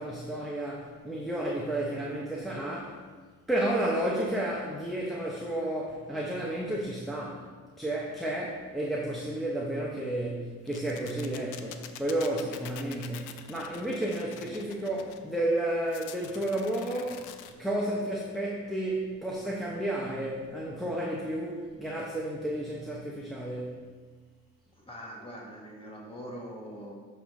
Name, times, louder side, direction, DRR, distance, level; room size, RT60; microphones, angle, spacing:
voice 1, 0.0-3.0 3.5-7.5 7.8-17.3 17.6-23.8, right 1 dB, ahead, -4 dB, 0.7 m, -32 dB
sound 1, 10.7-15.2 15.9-17.5, left 10 dB, 90° left, 0.5 m, -45 dB
voice 2, 24.8-26.9, equal, 20° left, -2 dB, 1.4 m, -43 dB
6.0 x 5.2 x 3.1 m, 1.5 s
cardioid pair, 90°, 30 cm